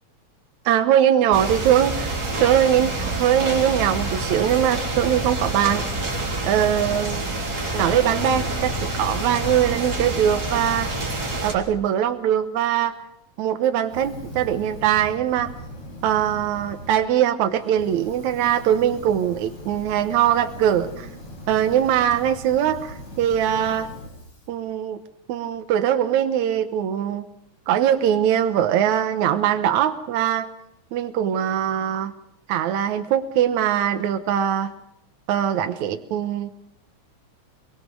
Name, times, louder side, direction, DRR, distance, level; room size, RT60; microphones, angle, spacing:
voice 1, 0.7-5.8 6.4-7.2 7.7-10.9 11.4-13.0 13.4-15.5 16.0-21.1 21.5-23.9 24.5-25.0 25.3-27.3 27.7-30.5 30.9-32.1 32.5-34.7 35.3-36.5, right 10 dB, 75° right, 8 dB, 2.3 m, -21 dB
sound 1, 1.3-11.5, right 2 dB, 30° right, 3.9 m, -27 dB
Fire, 13.8-17.0 17.4-24.5, equal, 65° left, 8.8 m, -39 dB
24.0 x 23.0 x 6.2 m, 0.78 s
omnidirectional pair, 3.4 m